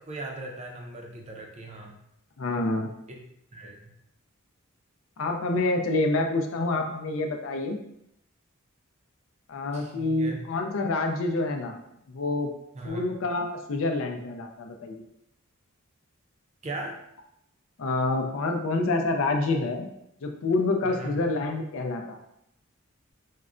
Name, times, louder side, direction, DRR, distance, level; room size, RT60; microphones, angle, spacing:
voice 1, 0.0-2.0 3.1-3.2 3.5-3.9 9.7-10.4 12.7-13.0 16.6-16.9 20.8-21.3, right 2 dB, 30° right, 0 dB, 0.5 m, -38 dB
voice 2, 2.4-2.9 5.2-7.8 9.5-11.8 12.1-12.5 12.8-15.0 17.8-19.9 20.2-22.2, left 2 dB, 70° left, 4 dB, 0.4 m, -27 dB
4.5 x 2.1 x 2.5 m, 0.79 s
head